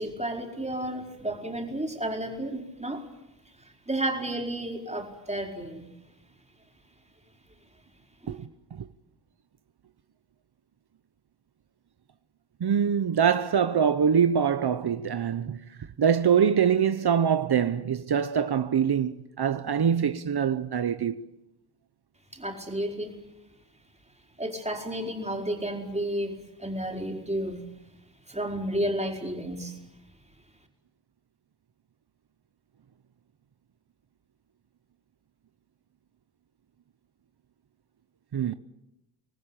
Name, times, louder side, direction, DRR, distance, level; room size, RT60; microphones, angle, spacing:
voice 1, 0.0-3.1 3.6-5.9 8.2-8.4 22.3-23.2 24.4-27.6 28.3-29.8, right 1 dB, 15° right, 4.5 m, -32 dB
voice 2, 8.3-8.9 12.6-15.6 16.0-21.2 38.3-38.5, right 7 dB, 70° right, 0.9 m, -24 dB
26.5 x 19.5 x 9.0 m
wide cardioid pair, 115°, 40 cm